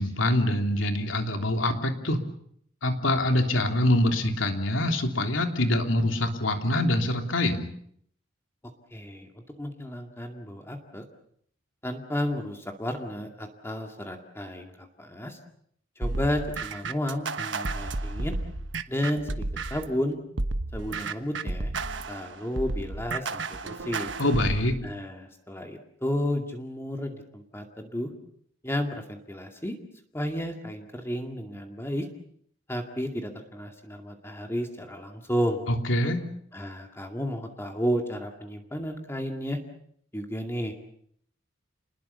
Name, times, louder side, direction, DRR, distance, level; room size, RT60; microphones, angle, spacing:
voice 1, 0.0-2.2 2.8-7.7 24.2-24.8 35.7-36.2, left 1 dB, 85° left, 5 dB, 3.3 m, -25 dB
voice 2, 8.9-11.0 11.8-15.4 16.0-18.4 18.9-20.2 20.7-21.7 22.1-24.1 24.8-28.1 28.6-29.8 30.1-32.1 32.7-35.6 36.5-39.6 40.1-40.7, equal, 15° left, 3 dB, 2.2 m, -32 dB
sound 1, 16.0-19.9 20.4-24.7, right 3 dB, 65° right, 1.3 m, -32 dB
29.5 x 20.5 x 6.9 m, 0.66 s
head